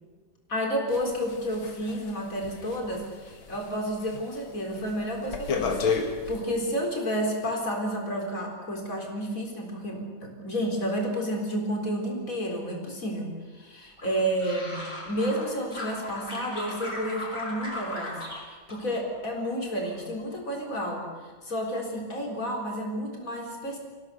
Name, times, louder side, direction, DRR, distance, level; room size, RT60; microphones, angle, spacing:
voice 1, 0.5-14.8 15.0-23.8, equal, 40° left, 1 dB, 4.4 m, -31 dB
sound 1, 0.9-3.7 4.0-4.4 4.7-6.4, left 5 dB, 85° left, 2.6 m, -31 dB
sound 2, 14.0-15.4 15.7-18.4 18.7-19.5 19.8-20.2, left 1 dB, 15° left, 5.7 m, -37 dB
25.0 x 16.5 x 7.0 m, 1.4 s
omnidirectional pair, 2.1 m